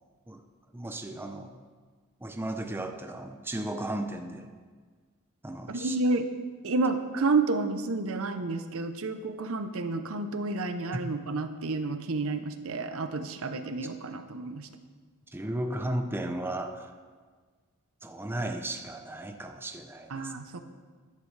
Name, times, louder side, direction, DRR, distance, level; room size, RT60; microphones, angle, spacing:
voice 1, 0.7-1.5 2.2-4.5 5.4-6.0 10.9-11.1 15.3-16.9 18.0-20.3, right 1 dB, 10° right, 5 dB, 0.6 m, -35 dB
voice 2, 5.7-6.2 6.6-14.7 20.1-20.6, right 3 dB, 65° right, 8 dB, 0.8 m, -30 dB
13.5 x 11.5 x 3.3 m, 1.5 s
head